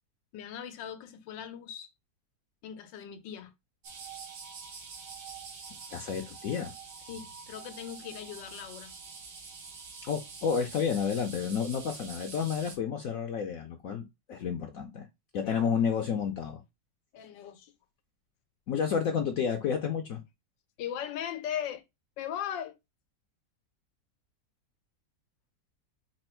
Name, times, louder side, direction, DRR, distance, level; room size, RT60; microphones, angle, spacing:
voice 1, 0.3-1.9 2.6-3.5 7.1-8.9 15.4-15.7 17.1-17.7 20.8-21.8 22.2-22.8, left 9 dB, 85° left, 1.4 m, -39 dB
sound 1, 3.8-12.8, right 5 dB, 65° right, 1.6 m, -46 dB
voice 2, 5.9-6.7 10.0-15.1 15.3-16.6 18.7-20.2, left 7 dB, 65° left, 0.9 m, -30 dB
4.4 x 2.5 x 4.4 m
omnidirectional pair, 1.9 m